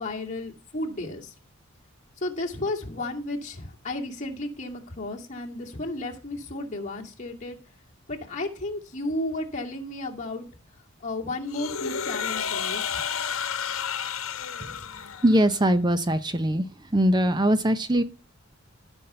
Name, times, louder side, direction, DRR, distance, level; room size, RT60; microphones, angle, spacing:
voice 1, 0.0-1.3 2.2-7.6 8.1-10.5 11.0-12.8, left 2 dB, 35° left, 0 dB, 2.2 m, -33 dB
sound 1, 11.5-15.5, left 7 dB, 85° left, 1.1 m, -31 dB
voice 2, 15.2-16.6 16.9-18.0, right 1 dB, 20° right, 11 dB, 0.6 m, -21 dB
14.0 x 5.5 x 6.7 m, 0.35 s
head